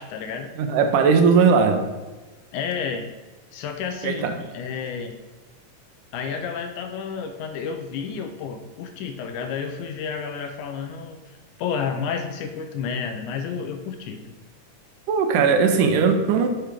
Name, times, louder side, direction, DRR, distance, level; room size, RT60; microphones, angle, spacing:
voice 1, 0.0-0.5 2.5-3.1 3.5-4.3 4.5-5.2 6.1-11.2 11.6-14.2, left 6 dB, 80° left, 6 dB, 1.9 m, -30 dB
voice 2, 0.6-1.8 4.0-4.4 15.1-16.5, right 5 dB, 80° right, 6 dB, 2.2 m, -18 dB
6.6 x 4.5 x 4.9 m, 1.2 s
omnidirectional pair, 3.7 m